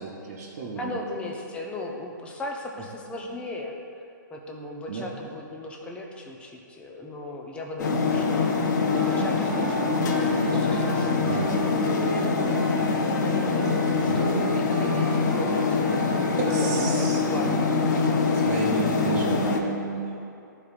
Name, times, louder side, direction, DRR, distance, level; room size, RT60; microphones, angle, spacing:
voice 1, 0.0-0.9 4.9-5.1 11.2-11.7 13.9-14.3 16.4-17.6 18.3-20.2, right 4 dB, 45° right, -6 dB, 1.0 m, -32 dB
voice 2, 0.8-4.0 4.3-12.7 13.1-17.8, left 1 dB, 10° left, 0 dB, 0.7 m, -37 dB
sound 1, 7.8-19.6, left 4 dB, 60° left, 0.7 m, -24 dB
sound 2, 8.9-18.0, right 5 dB, 70° right, 0.4 m, -37 dB
12.0 x 4.6 x 2.5 m, 2.6 s
hypercardioid pair, 140°, 11 cm